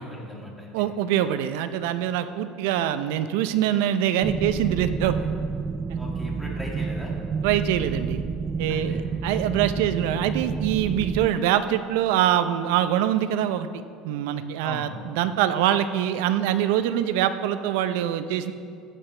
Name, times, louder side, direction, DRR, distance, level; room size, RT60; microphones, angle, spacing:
voice 1, 0.0-0.7 5.0-5.3 6.0-7.1 8.7-9.0 14.6-14.9, left 1 dB, 5° left, -3 dB, 2.0 m, -38 dB
voice 2, 0.7-5.1 5.9-6.0 7.4-8.2 8.6-13.7 14.0-18.5, right 11 dB, 80° right, 11 dB, 0.5 m, -24 dB
sound 1, 4.2-11.3, right 5 dB, 25° right, 0.3 m, -29 dB
15.0 x 9.1 x 3.3 m, 2.3 s
cardioid pair, 135°, 0 cm